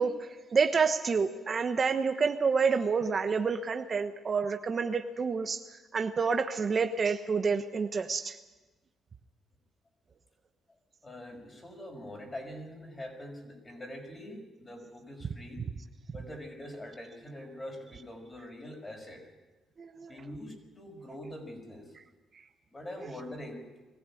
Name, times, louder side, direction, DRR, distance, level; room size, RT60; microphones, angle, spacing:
voice 1, 0.0-5.6 5.9-8.4 19.8-20.1, right 5 dB, 40° right, 7 dB, 1.1 m, -28 dB
voice 2, 11.0-15.6 16.1-19.3 20.1-21.9 22.7-23.7, left 1 dB, 25° left, 3 dB, 5.6 m, -44 dB
21.5 x 15.5 x 8.6 m, 1.2 s
cardioid pair, 90°, 0 cm